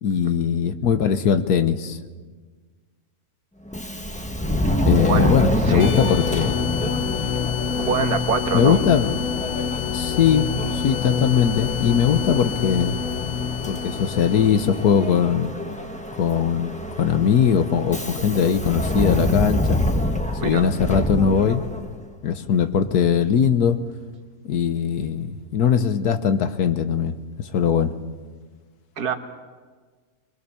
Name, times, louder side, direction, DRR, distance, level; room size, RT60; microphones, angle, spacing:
voice 1, 0.0-2.0 4.5-4.6 4.9-6.6 8.5-9.1 9.9-10.5 10.7-13.0 13.7-15.5 16.2-16.7 17.0-19.8 20.4-21.6 22.2-23.8 24.4-27.1 27.4-27.9, left 8 dB, 85° left, 10 dB, 1.6 m, -20 dB
Subway metro underground, 3.7-22.0, left 1 dB, 5° left, 1.0 m, -27 dB
voice 2, 5.6-6.1 7.8-8.8 20.4-20.7 29.0-29.1, right 6 dB, 80° right, 6 dB, 1.9 m, -25 dB
sound 1, 5.8-15.2, left 7 dB, 60° left, 1.2 m, -27 dB
22.5 x 21.5 x 7.0 m, 1.5 s
omnidirectional pair, 1.6 m